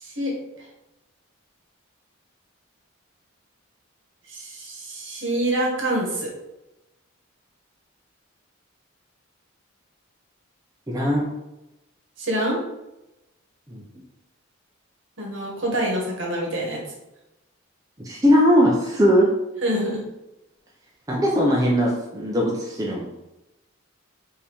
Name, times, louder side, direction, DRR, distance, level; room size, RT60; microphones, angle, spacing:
voice 1, 0.0-0.7 4.3-6.3 12.2-12.6 15.2-16.8 19.6-20.0, right 1 dB, 60° right, -2 dB, 1.4 m, -26 dB
voice 2, 10.9-11.3 13.7-13.8 18.0-19.3 21.1-23.1, equal, 15° right, -3 dB, 0.5 m, -19 dB
4.7 x 2.7 x 3.5 m, 0.93 s
head